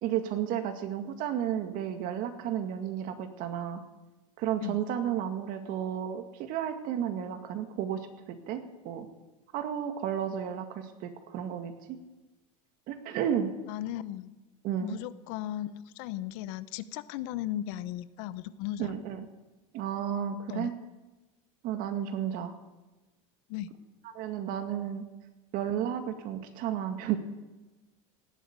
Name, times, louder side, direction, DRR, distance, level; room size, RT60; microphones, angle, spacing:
voice 1, 0.0-3.8 4.4-9.1 9.5-12.0 12.9-13.5 14.6-14.9 18.8-19.3 19.7-20.7 21.6-22.5 24.1-25.0 25.5-27.2, right 9 dB, 50° right, 7 dB, 2.1 m, -32 dB
voice 2, 13.7-14.4 14.8-18.9 20.5-20.7 23.5-23.7, left 13 dB, 60° left, 15 dB, 0.9 m, -36 dB
17.5 x 8.6 x 9.6 m, 1.1 s
supercardioid pair, 135°, 18 cm